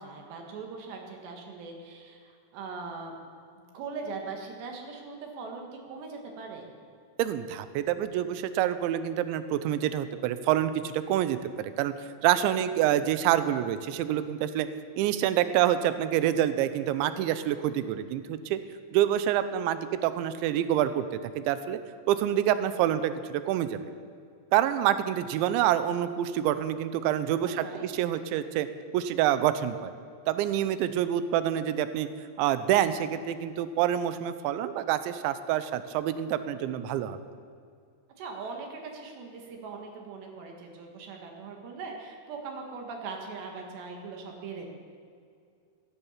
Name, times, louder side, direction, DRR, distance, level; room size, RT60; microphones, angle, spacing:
voice 1, 0.0-3.1 3.6-6.7 27.4-27.9 38.2-44.7, right 4 dB, 75° right, 2 dB, 3.7 m, -40 dB
voice 2, 7.2-11.9 12.2-14.7 15.0-18.6 18.9-21.1 21.4-21.8 22.1-23.8 24.5-28.7 28.9-29.9 30.3-32.1 32.4-37.2, right 11 dB, 90° right, 12 dB, 3.0 m, -27 dB
16.5 x 9.8 x 7.3 m, 2.3 s
omnidirectional pair, 5.2 m